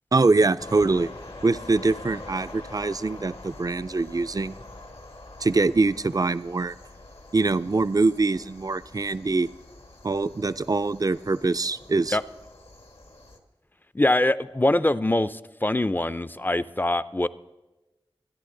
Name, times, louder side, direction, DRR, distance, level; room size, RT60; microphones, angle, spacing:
voice 1, 0.1-1.1 1.4-4.6 5.4-6.8 7.3-9.5 10.0-12.2, right 3 dB, 40° right, 13 dB, 0.4 m, -23 dB
sound 1, 0.6-13.4, left 2 dB, 75° left, 1.5 m, -45 dB
voice 2, 13.9-17.3, left 1 dB, 20° left, 15 dB, 0.4 m, -23 dB
25.5 x 10.5 x 3.8 m, 1.1 s
wide cardioid pair, 45°, 10 cm